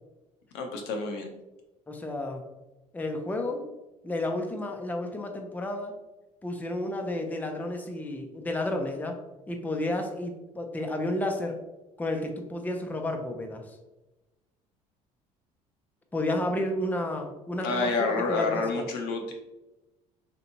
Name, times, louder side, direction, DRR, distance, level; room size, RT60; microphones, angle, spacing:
voice 1, 0.5-1.3 17.6-19.3, left 3 dB, 70° left, 3 dB, 0.6 m, -28 dB
voice 2, 1.9-2.4 2.9-3.7 4.0-5.9 6.4-9.2 9.5-11.6 12.0-13.8 16.1-18.8, left 1 dB, 10° left, 3 dB, 0.5 m, -31 dB
3.3 x 2.8 x 2.7 m, 1.0 s
hypercardioid pair, 60°, 18 cm